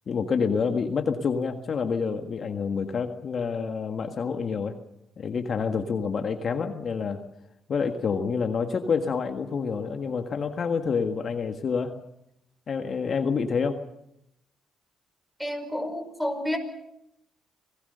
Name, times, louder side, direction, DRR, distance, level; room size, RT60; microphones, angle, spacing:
voice 1, 0.1-4.8 5.2-7.2 7.7-11.9 12.7-13.9, left 5 dB, 50° left, 6 dB, 1.7 m, -28 dB
voice 2, 15.4-16.6, left 1 dB, ahead, 8 dB, 5.4 m, -30 dB
26.5 x 18.5 x 6.8 m, 0.81 s
cardioid pair, 90°, 0 cm